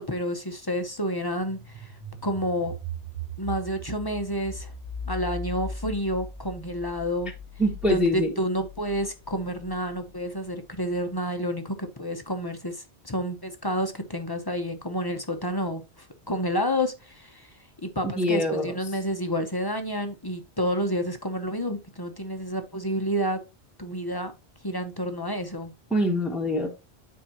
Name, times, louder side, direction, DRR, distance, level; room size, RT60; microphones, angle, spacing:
voice 1, 0.0-2.8 3.4-4.7 5.0-7.3 7.9-23.4 23.8-24.3 24.6-25.7, equal, 25° left, 0.7 m, -29 dB
sound 1, 1.4-10.1, right 1 dB, 80° right, 1.9 m, -39 dB
voice 2, 7.6-8.3 18.2-18.6 25.9-26.7, left 1 dB, ahead, 1.1 m, -24 dB
8.9 x 4.6 x 2.9 m
omnidirectional pair, 1.2 m